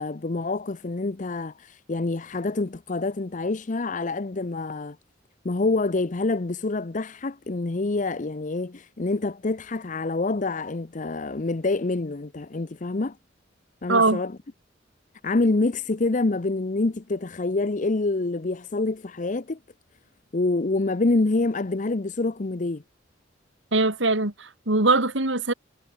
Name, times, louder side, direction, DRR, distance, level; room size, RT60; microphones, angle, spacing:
voice 1, 0.0-5.0 5.4-13.2 13.8-14.4 15.2-19.6 20.3-22.8, left 2 dB, 40° left, 0.7 m, -26 dB
voice 2, 13.9-14.2 23.7-25.5, right 3 dB, 75° right, 3.4 m, -22 dB
head